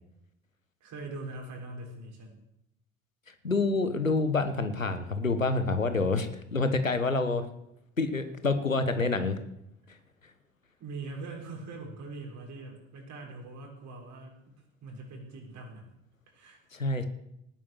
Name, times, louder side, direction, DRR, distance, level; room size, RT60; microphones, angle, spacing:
voice 1, 0.8-2.4 9.2-9.4 10.8-14.3 14.8-15.9 16.3-16.6, right 3 dB, 50° right, 0 dB, 6.4 m, -42 dB
voice 2, 3.3-7.4 8.0-9.4 9.9-10.0 16.7-17.1, left 3 dB, 90° left, 10 dB, 1.3 m, -27 dB
18.5 x 9.7 x 7.2 m, 0.82 s
figure-of-eight pair, 55°, 39 cm